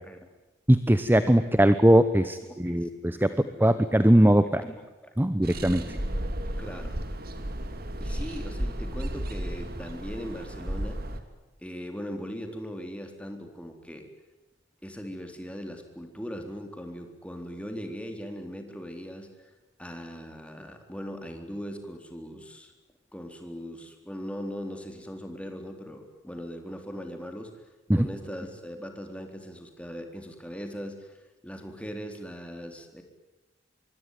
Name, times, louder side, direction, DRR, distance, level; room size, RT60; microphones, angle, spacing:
voice 1, 0.7-4.6 5.2-6.0 28.0-28.1, right 1 dB, 10° right, 12 dB, 0.9 m, -21 dB
voice 2, 2.5-2.9 3.1-3.4 4.2-4.3 4.5-5.1 5.9-7.0 8.0-11.0 11.6-14.0 14.8-19.3 19.8-22.7 23.1-27.5 27.9-31.2 31.4-33.0, equal, 5° left, 5 dB, 3.8 m, -39 dB
sound 1, 5.4-11.2, right 1 dB, 50° right, 2.6 m, -33 dB
25.5 x 23.5 x 9.4 m, 1.1 s
head